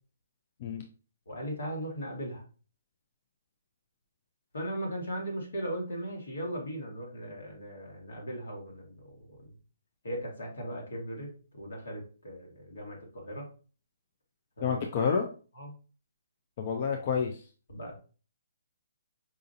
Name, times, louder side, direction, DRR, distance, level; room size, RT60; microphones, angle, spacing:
voice 1, 1.3-2.4 4.5-9.5 10.0-13.5 14.6-14.8 15.5-15.7 17.7-17.9, equal, 75° left, 0 dB, 1.6 m, -38 dB
voice 2, 14.6-15.3 16.6-17.4, left 6 dB, 45° left, 3 dB, 0.5 m, -29 dB
4.9 x 2.5 x 2.6 m, 0.37 s
hypercardioid pair, 140°, 0 cm